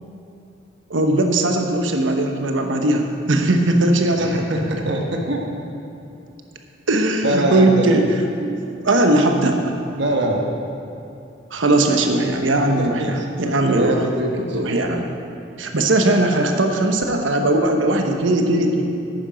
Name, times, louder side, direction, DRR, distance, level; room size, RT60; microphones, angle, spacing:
voice 1, 0.9-4.3 6.9-9.6 11.5-14.0 14.5-15.1 15.6-18.9, right 2 dB, 80° right, 4 dB, 1.0 m, -19 dB
voice 2, 4.2-5.4 7.2-7.9 10.0-10.5 12.8-13.4 13.7-14.6, right 1 dB, 65° right, 1 dB, 1.3 m, -23 dB
11.5 x 8.9 x 5.1 m, 2.6 s
head